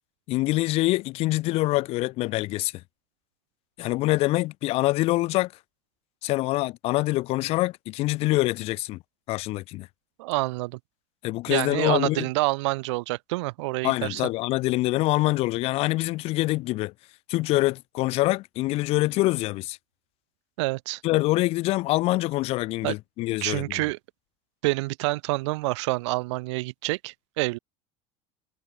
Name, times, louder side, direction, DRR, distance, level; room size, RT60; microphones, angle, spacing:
voice 1, 0.3-2.7 3.8-5.5 6.2-9.0 9.3-9.9 11.2-12.2 13.8-16.9 17.3-19.8 21.0-23.8, left 19 dB, 40° left, 1.8 m, -25 dB
voice 2, 10.2-10.8 11.5-14.2 20.6-21.0 22.8-22.9 23.4-24.0 24.6-27.6, right 23 dB, 85° right, 1.1 m, -27 dB
cardioid pair, 175°, 15 cm